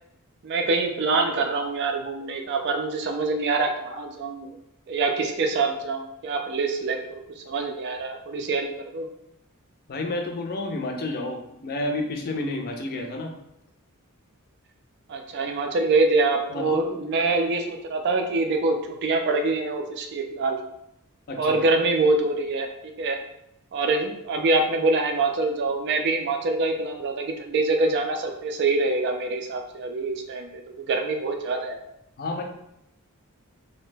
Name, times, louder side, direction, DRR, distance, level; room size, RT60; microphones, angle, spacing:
voice 1, 0.4-4.5 4.9-8.7 8.9-9.1 15.1-20.6 21.4-22.7 23.0-23.2 23.7-31.8, right 3 dB, 50° right, 4 dB, 0.3 m, -25 dB
voice 2, 9.9-13.3 16.5-16.8 21.3-21.6 32.2-32.4, left 2 dB, 45° left, 2 dB, 0.4 m, -30 dB
2.8 x 2.1 x 3.2 m, 0.80 s
head